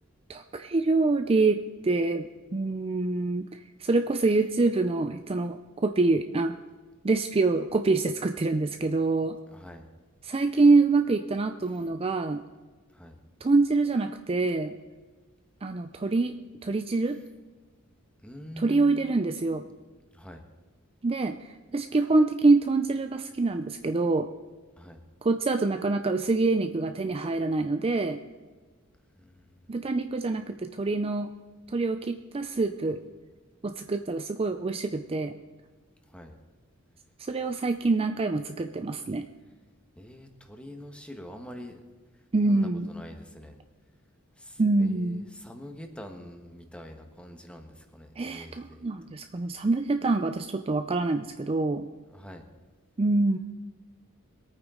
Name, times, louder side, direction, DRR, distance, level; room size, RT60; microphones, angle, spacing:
voice 1, 0.3-6.6 7.0-9.4 10.2-12.4 13.4-14.7 15.6-16.3 16.6-17.2 18.6-19.6 21.0-24.3 25.2-28.2 29.7-31.3 31.7-33.0 33.6-35.4 37.3-39.3 42.3-42.9 44.6-45.3 48.2-51.9 53.0-53.4, right 3 dB, 25° right, 7 dB, 0.4 m, -25 dB
voice 2, 9.5-9.9 12.9-13.2 18.2-19.0 20.1-20.4 24.8-25.0 29.1-29.7 36.1-36.4 40.0-41.8 42.4-43.6 44.4-48.9 52.1-52.4, equal, 5° left, 4 dB, 1.3 m, -45 dB
22.5 x 9.0 x 3.8 m, 1.4 s
head